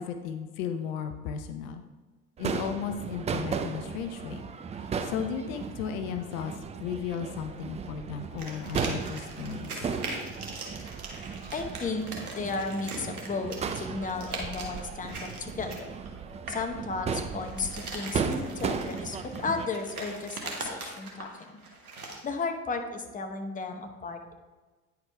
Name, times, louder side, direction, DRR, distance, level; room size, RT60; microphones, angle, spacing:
voice 1, 0.0-1.8 2.4-4.5 4.8-9.8, left 7 dB, 65° left, 7 dB, 0.7 m, -35 dB
Crowd / Fireworks, 2.4-19.7, right 5 dB, 15° right, 0.4 m, -36 dB
sound 1, 8.4-16.7 17.3-22.4, right 2 dB, 90° right, 1.3 m, -41 dB
voice 2, 11.5-12.1 12.3-15.9 16.5-21.6 22.2-24.4, left 4 dB, 20° left, 5 dB, 0.9 m, -34 dB
9.5 x 4.7 x 3.4 m, 1.3 s
hypercardioid pair, 75°, 43 cm